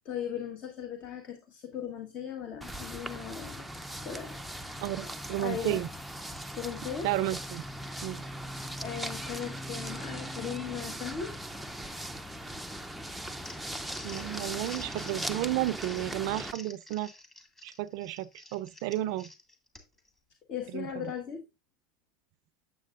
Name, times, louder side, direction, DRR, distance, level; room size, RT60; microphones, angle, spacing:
voice 1, 0.0-3.7 4.0-5.8 6.5-7.1 8.8-11.3 20.5-21.4, left 8 dB, 45° left, 1.2 m, -38 dB
sound 1, 2.6-16.5, right 1 dB, ahead, 0.5 m, -39 dB
voice 2, 4.8-5.9 7.0-7.6 8.0-8.3 14.0-17.1 17.6-19.3 20.7-21.1, right 15 dB, 60° right, 0.5 m, -32 dB
Crumpling crinkling, 13.2-20.1, left 2 dB, 15° left, 1.8 m, -49 dB
8.4 x 7.4 x 2.4 m
hypercardioid pair, 105°, 3 cm